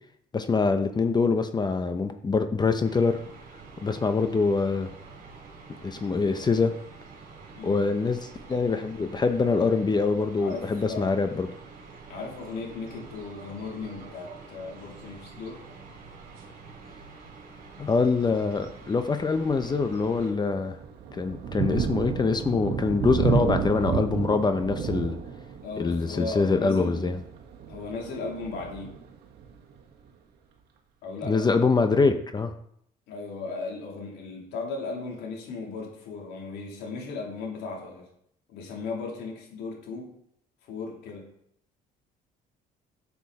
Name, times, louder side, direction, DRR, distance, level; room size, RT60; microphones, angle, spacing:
voice 1, 0.3-3.2 3.8-4.9 5.8-6.7 7.6-11.5 17.8-20.8 21.1-25.2 25.8-27.2 31.2-32.5, left 4 dB, 25° left, 8 dB, 0.9 m, -24 dB
sound 1, 2.8-20.3, right 4 dB, 60° right, 3.5 m, -47 dB
voice 2, 10.4-11.2 12.1-15.6 25.6-27.1 27.7-29.0 31.0-31.5 33.1-38.1 38.5-40.1 40.6-41.3, left 4 dB, 85° left, -1 dB, 3.4 m, -36 dB
Thunder, 17.7-18.0 18.6-18.8 19.2-29.8, right 6 dB, 75° right, 1.5 m, -32 dB
12.0 x 7.1 x 4.2 m, 0.70 s
cardioid pair, 110°, 17 cm